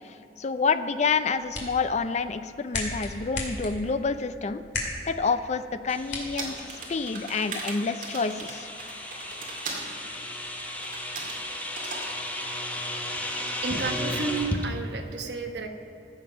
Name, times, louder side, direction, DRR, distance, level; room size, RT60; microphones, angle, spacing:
voice 1, 0.4-4.6 5.1-8.7, left 4 dB, 40° left, 11 dB, 0.4 m, -28 dB
sound 1, 1.1-7.1, left 2 dB, 75° left, 2.4 m, -37 dB
sound 2, 5.9-14.6, left 1 dB, 10° left, 1.0 m, -35 dB
sound 3, 6.4-9.9 10.8-11.4 11.8-12.1, right 3 dB, 45° right, 2.2 m, -38 dB
voice 2, 13.4-15.7, right 4 dB, 65° right, 5 dB, 1.0 m, -32 dB
15.5 x 7.4 x 5.2 m, 3.0 s
head